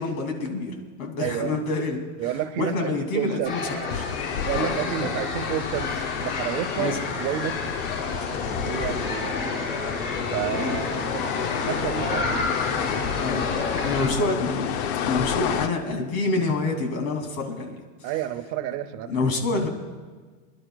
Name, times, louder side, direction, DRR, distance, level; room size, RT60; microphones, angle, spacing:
voice 1, 0.0-4.1 4.5-5.1 6.8-7.0 10.5-11.1 13.2-13.5 13.8-14.7 15.1-17.8 19.1-19.7, left 3 dB, 80° left, 3 dB, 2.6 m, -27 dB
voice 2, 1.2-1.6 2.2-3.5 4.4-7.6 8.7-9.3 10.3-12.4 18.0-19.1, right 11 dB, 35° right, 7 dB, 0.7 m, -30 dB
sound 1, 3.4-14.1, left 3 dB, 25° left, 3.8 m, -30 dB
sound 2, 3.9-15.7, left 8 dB, 50° left, 0.7 m, -30 dB
28.0 x 11.5 x 2.3 m, 1.5 s
supercardioid pair, 165°, 41 cm